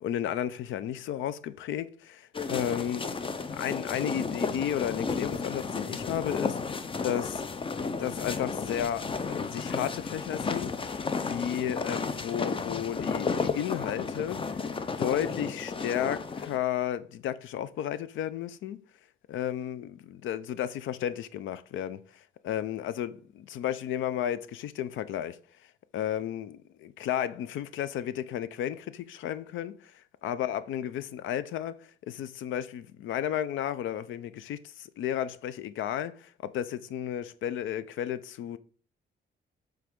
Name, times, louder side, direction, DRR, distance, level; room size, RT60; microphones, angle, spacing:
voice 1, 0.0-3.1 3.5-7.4 8.0-10.7 11.3-14.7 15.0-18.8 19.3-25.4 25.9-38.6, left 10 dB, 75° left, 0.5 m, -33 dB
sound 1, 2.3-16.6, left 4 dB, 25° left, 0.5 m, -33 dB
7.6 x 3.5 x 3.7 m
cardioid pair, 90°, 20 cm